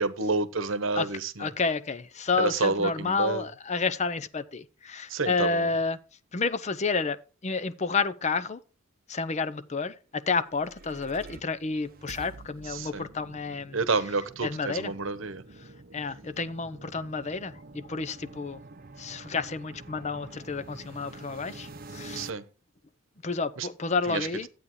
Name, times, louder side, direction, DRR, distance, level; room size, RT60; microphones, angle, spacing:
voice 1, 0.0-1.5 2.4-3.5 5.1-5.7 12.7-13.1 13.7-15.4 22.1-22.4 23.6-23.7 24.1-24.3, right 3 dB, 75° right, 0.9 m, -29 dB
voice 2, 1.4-6.0 6.3-7.2 7.4-8.6 9.1-13.8 14.4-14.9 15.6-18.6 19.0-22.3 23.2-24.5, left 4 dB, 35° left, 0.6 m, -30 dB
sound 1, 10.3-22.3, right 2 dB, 45° right, 0.7 m, -47 dB
12.0 x 8.4 x 3.1 m
head